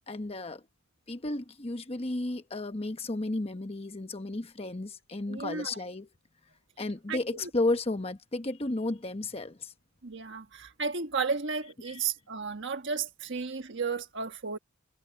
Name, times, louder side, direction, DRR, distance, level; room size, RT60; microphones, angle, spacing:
voice 1, 0.1-0.6 1.1-6.1 6.8-9.7 11.9-12.0, left 2 dB, 30° left, 1.0 m, -33 dB
voice 2, 5.3-5.8 7.1-7.5 10.0-14.6, right 5 dB, 60° right, 1.4 m, -33 dB
head